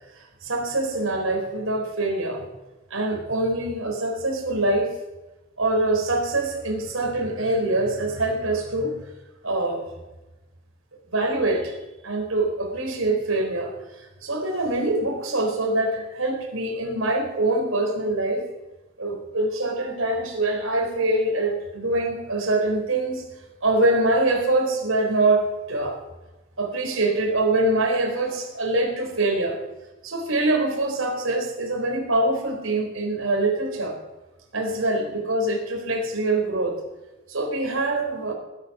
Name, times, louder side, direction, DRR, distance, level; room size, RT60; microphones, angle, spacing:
voice 1, 0.4-2.4 2.9-4.9 5.6-9.0 9.4-9.9 11.1-11.8 12.0-13.7 14.2-18.4 19.0-23.2 23.6-25.4 25.7-26.0 26.6-29.6 30.0-33.9 34.5-36.8 37.3-38.3, right 2 dB, 75° right, 1 dB, 4.0 m, -24 dB
19.0 x 8.7 x 6.1 m, 1.1 s
head